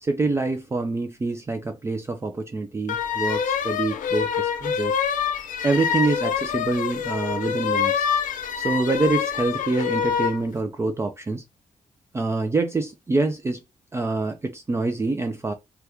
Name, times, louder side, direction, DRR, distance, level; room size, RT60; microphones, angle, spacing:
voice 1, 0.0-4.9 5.6-8.1 8.6-11.4 12.1-13.6 13.9-15.5, right 3 dB, 20° right, 0.4 m, -26 dB
sound 1, 2.9-10.4, left 7 dB, 90° left, 0.5 m, -26 dB
2.9 x 2.2 x 3.4 m
cardioid pair, 110°, 13 cm